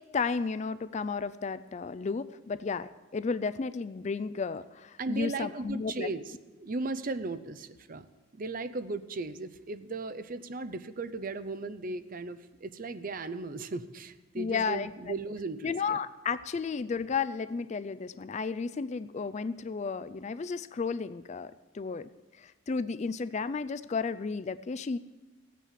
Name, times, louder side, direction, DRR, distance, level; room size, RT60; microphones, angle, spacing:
voice 1, 0.1-6.1 14.3-15.1 15.6-22.1 22.4-25.0, left 5 dB, 35° left, 14 dB, 0.3 m, -33 dB
voice 2, 5.0-6.2 6.6-8.1 8.3-16.0, right 3 dB, 40° right, 12 dB, 0.6 m, -36 dB
16.0 x 8.3 x 7.4 m, 1.1 s
head